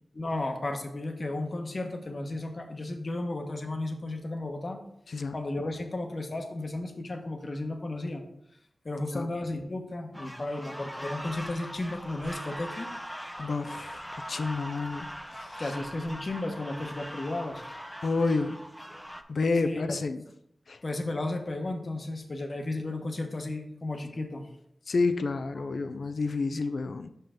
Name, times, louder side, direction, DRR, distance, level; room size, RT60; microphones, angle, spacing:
voice 1, 0.1-4.8 5.3-8.2 8.8-12.9 15.6-17.6 19.6-19.9 20.8-24.4 25.6-25.7, left 2 dB, 50° left, 4 dB, 1.0 m, -34 dB
sound 1, 10.1-19.2, equal, ahead, 0.6 m, -41 dB
voice 2, 13.4-15.1 15.5-15.6 18.0-18.6 19.3-20.2 20.7-20.8 24.9-27.1, left 3 dB, 75° left, 10 dB, 0.5 m, -29 dB
5.7 x 5.5 x 3.7 m, 0.74 s
cardioid pair, 55°, 0 cm